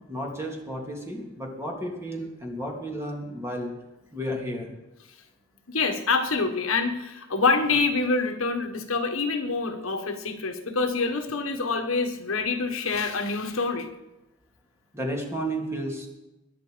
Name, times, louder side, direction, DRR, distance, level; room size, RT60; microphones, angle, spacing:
voice 1, 0.0-3.7 4.1-4.7 14.9-16.1, equal, 15° right, 0 dB, 3.0 m, -32 dB
voice 2, 5.7-13.9, left 4 dB, 70° left, 5 dB, 1.5 m, -26 dB
22.5 x 10.5 x 5.1 m, 0.98 s
head